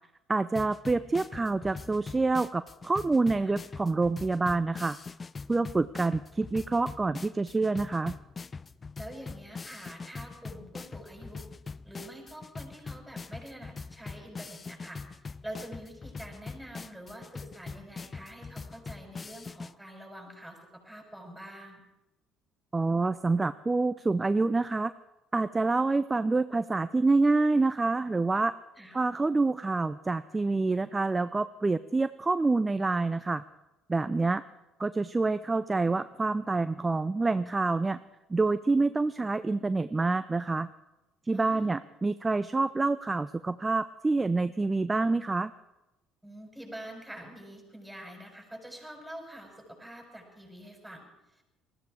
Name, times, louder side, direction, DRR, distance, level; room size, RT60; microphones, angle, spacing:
voice 1, 0.3-5.0 5.5-8.2 22.7-24.9 25.3-28.5 28.9-33.4 33.9-34.4 34.8-38.0 38.3-40.7 41.2-45.5, right 3 dB, 20° right, 13 dB, 0.5 m, -27 dB
sound 1, 0.5-19.7, left 4 dB, 30° left, 0.5 m, -43 dB
voice 2, 9.0-11.5 11.8-15.0 15.4-21.8 28.8-29.0 41.3-41.7 46.2-51.4, right 1 dB, 5° right, 1 dB, 6.2 m, -46 dB
20.5 x 14.0 x 4.8 m, 0.98 s
hypercardioid pair, 60°, 0 cm